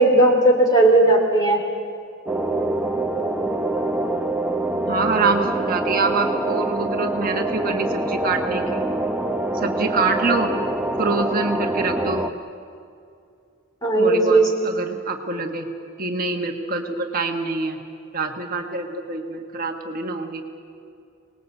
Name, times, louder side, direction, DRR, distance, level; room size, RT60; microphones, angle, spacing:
voice 1, 0.0-1.6 13.8-14.5, right 2 dB, 20° left, 1 dB, 4.0 m, -16 dB
sound 1, 2.3-12.3, right 2 dB, 10° right, 0.9 m, -25 dB
voice 2, 4.9-8.8 9.5-10.5 11.0-12.3 14.0-15.7 16.0-17.8 18.1-20.4, right 3 dB, 40° right, 2 dB, 1.4 m, -25 dB
26.0 x 19.5 x 8.2 m, 2.5 s
head